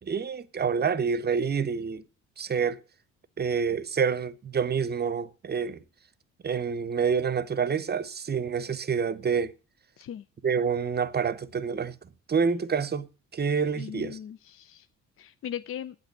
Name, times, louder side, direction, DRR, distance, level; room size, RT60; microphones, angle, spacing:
voice 1, 0.0-2.0 2.4-2.8 3.4-5.8 6.4-9.5 10.4-12.0 12.3-14.2, right 6 dB, 25° right, 0.9 m, -27 dB
voice 2, 13.7-14.9 15.2-16.0, left 9 dB, 40° left, 0.6 m, -38 dB
9.0 x 8.1 x 8.1 m
hypercardioid pair, 55°, 36 cm